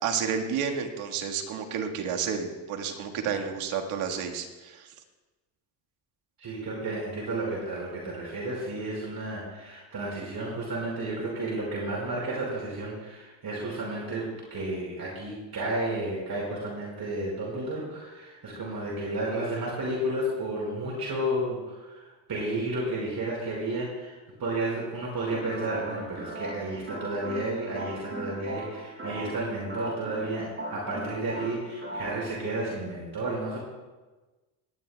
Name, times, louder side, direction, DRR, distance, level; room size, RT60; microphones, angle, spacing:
voice 1, 0.0-4.9, right 7 dB, 90° right, 3 dB, 1.8 m, -31 dB
voice 2, 6.4-33.6, right 1 dB, 50° right, -4 dB, 5.2 m, -32 dB
sound 1, 25.3-32.3, right 1 dB, 25° right, 5.8 m, -39 dB
20.0 x 17.5 x 2.3 m, 1.2 s
cardioid pair, 100°, 48 cm